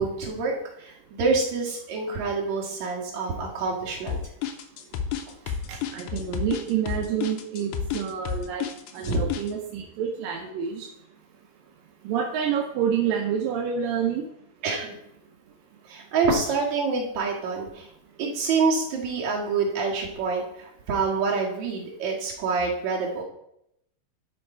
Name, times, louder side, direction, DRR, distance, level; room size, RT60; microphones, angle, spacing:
voice 1, 0.0-4.2 9.0-9.2 14.6-14.9 15.9-17.9 18.2-23.2, right 4 dB, 50° right, -2 dB, 2.7 m, -27 dB
sound 1, 4.1-9.5, left 8 dB, 85° left, 2.0 m, -30 dB
voice 2, 5.5-8.6 8.9-10.9 12.0-14.3, right 8 dB, 80° right, 1 dB, 2.0 m, -28 dB
11.0 x 5.3 x 4.4 m, 0.76 s
omnidirectional pair, 4.9 m